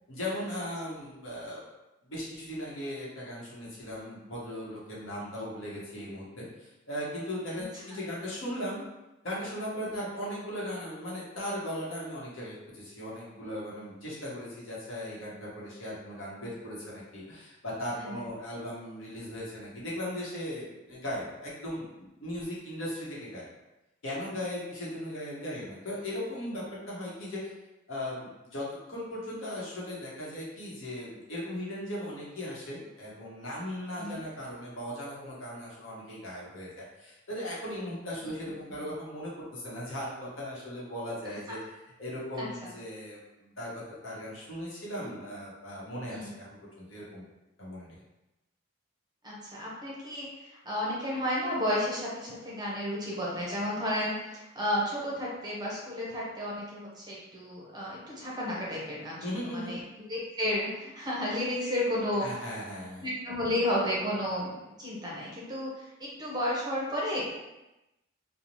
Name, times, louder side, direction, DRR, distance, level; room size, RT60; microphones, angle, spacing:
voice 1, 0.1-1.6 2.0-8.8 9.2-23.5 24.0-27.5 27.9-41.6 42.0-47.3 47.6-48.0 59.2-59.8 62.2-63.0, equal, 80° left, -5 dB, 0.9 m, -38 dB
voice 2, 42.4-42.7 46.1-46.3 49.2-62.3 63.0-67.3, left 1 dB, 20° right, -5 dB, 0.5 m, -32 dB
2.6 x 2.0 x 3.0 m, 0.98 s
head